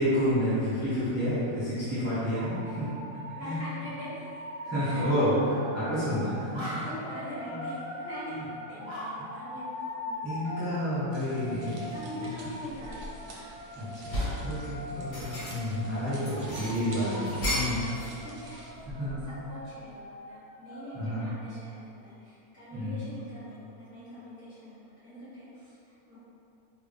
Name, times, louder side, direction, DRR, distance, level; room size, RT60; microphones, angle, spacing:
voice 1, 0.0-2.9 3.4-3.6 4.6-6.8 7.5-7.6 10.2-11.8 12.2-12.3 13.8-14.1 14.4-17.8 18.9-19.2 20.9-21.2 22.7-23.0, equal, 15° right, -12 dB, 0.7 m, -29 dB
sound 1, 2.1-21.0, left 1 dB, 45° right, 0.3 m, -41 dB
voice 2, 3.3-5.0 6.7-10.6 11.9-13.5 14.7-14.9 15.8-16.1 17.7-26.2, equal, 50° left, -14 dB, 2.0 m, -44 dB
sound 2, 11.1-18.7, right 2 dB, 60° right, 0.8 m, -50 dB
sound 3, 11.7-12.0 12.5-13.5 13.8-14.5 14.9-15.8 16.2-18.2 18.4-19.4, equal, 90° left, 1.5 m, -35 dB
4.0 x 2.2 x 3.4 m, 2.6 s
omnidirectional pair, 1.6 m